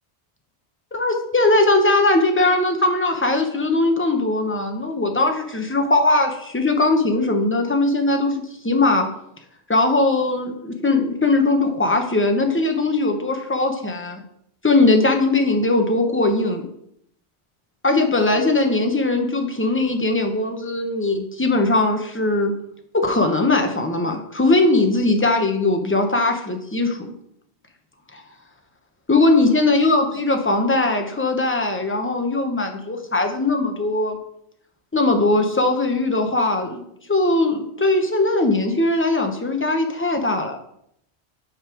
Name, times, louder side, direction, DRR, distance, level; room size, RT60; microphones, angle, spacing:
voice 1, 0.9-9.1 9.7-14.2 14.6-16.7 17.8-22.5 22.9-27.1 28.1-28.2 29.1-34.2 34.9-36.8 37.1-40.6, left 2 dB, 15° left, 4 dB, 0.7 m, -20 dB
5.6 x 5.6 x 4.9 m, 0.73 s
omnidirectional pair, 1.1 m